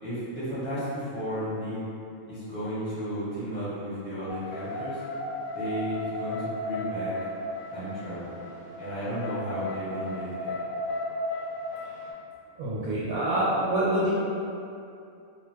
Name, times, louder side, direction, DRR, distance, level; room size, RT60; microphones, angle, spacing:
voice 1, 0.0-1.8 2.3-5.0 5.5-7.1 7.7-8.3 8.8-10.6, equal, 10° right, -12 dB, 0.7 m, -33 dB
sound 1, 4.3-12.1, left 2 dB, 75° left, 1.0 m, -35 dB
voice 2, 12.6-14.1, right 1 dB, 90° right, -9 dB, 1.1 m, -26 dB
2.5 x 2.3 x 3.2 m, 2.6 s
omnidirectional pair, 1.4 m